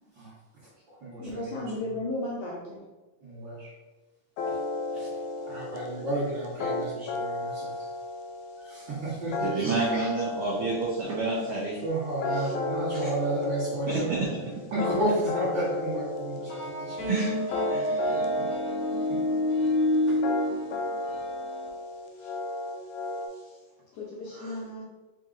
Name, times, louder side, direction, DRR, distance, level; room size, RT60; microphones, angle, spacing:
voice 1, 0.6-1.5 3.2-3.7 4.5-4.6 4.9-5.1 5.4-7.9 8.6-9.7 11.8-14.1 14.7-17.0 18.1-18.5 19.1-19.2 20.1-20.2, right 1 dB, 50° right, -8 dB, 1.5 m, -32 dB
voice 2, 1.2-2.8 24.0-24.8, left 1 dB, 70° left, -4 dB, 1.7 m, -34 dB
sound 1, 4.4-23.3, left 2 dB, 85° left, 2.0 m, -34 dB
voice 3, 9.4-11.8 12.3-12.5 13.0-13.1 13.9-14.6 17.1-17.4 17.7-18.3 22.2-22.3 23.4-23.5 24.3-24.6, right 3 dB, 80° right, -4 dB, 1.2 m, -30 dB
sound 2, 16.5-21.7, left 1 dB, 55° left, 1.5 m, -28 dB
4.8 x 2.8 x 3.6 m, 1.2 s
omnidirectional pair, 3.5 m